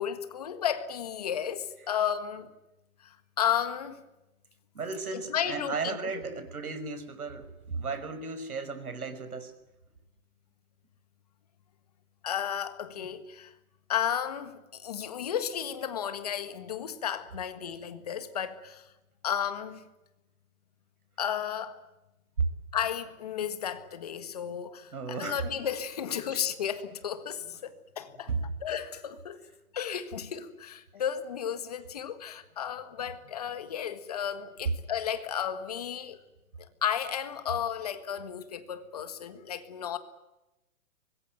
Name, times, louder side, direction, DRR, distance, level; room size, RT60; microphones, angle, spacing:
voice 1, 0.0-2.5 3.0-4.0 5.1-6.1 12.2-13.5 13.9-18.9 19.2-19.8 21.2-21.8 22.7-28.3 28.6-29.4 29.7-36.2 36.8-40.0, left 9 dB, 25° left, 1.6 m, -33 dB
voice 2, 4.7-9.5 13.0-13.1 22.4-22.5 24.9-25.6 28.3-28.4, right 4 dB, 90° right, 5.6 m, -34 dB
24.5 x 21.5 x 9.1 m
hypercardioid pair, 175°, 43 cm